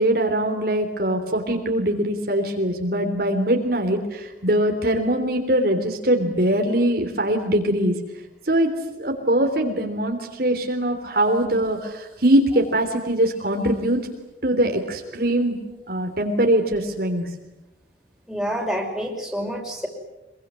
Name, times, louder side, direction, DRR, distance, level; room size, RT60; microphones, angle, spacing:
voice 1, 0.0-8.0 8.4-8.7 9.0-14.0 14.4-15.6 15.9-17.3, right 1 dB, 55° right, 3 dB, 3.3 m, -22 dB
voice 2, 18.3-19.9, equal, ahead, 0 dB, 5.5 m, -28 dB
25.0 x 23.5 x 9.7 m, 0.97 s
head